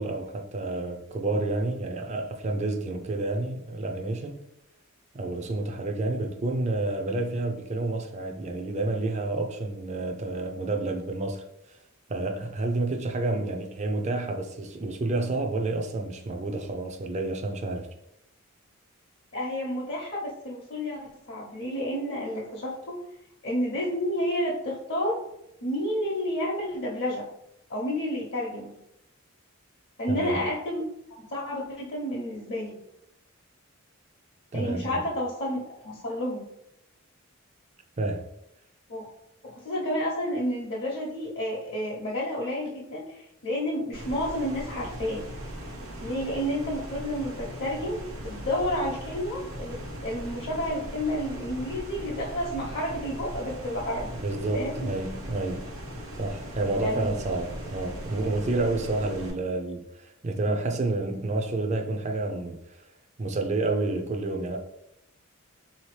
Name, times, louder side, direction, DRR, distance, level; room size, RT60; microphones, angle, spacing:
voice 1, 0.0-4.4 5.1-11.8 12.1-17.9 30.1-30.5 34.5-35.1 38.0-38.3 54.2-55.7 56.2-62.9 63.2-64.6, right 2 dB, 35° right, 0.4 m, -29 dB
voice 2, 19.3-23.0 23.4-25.2 25.6-27.3 27.7-28.7 30.0-30.8 31.1-32.8 34.5-36.4 38.9-39.0 39.4-45.3 46.0-54.1 54.5-54.9 56.7-57.2, equal, 55° left, 0.8 m, -30 dB
sound 1, 43.9-59.3, equal, 85° right, 1.1 m, -39 dB
3.9 x 2.8 x 3.2 m
head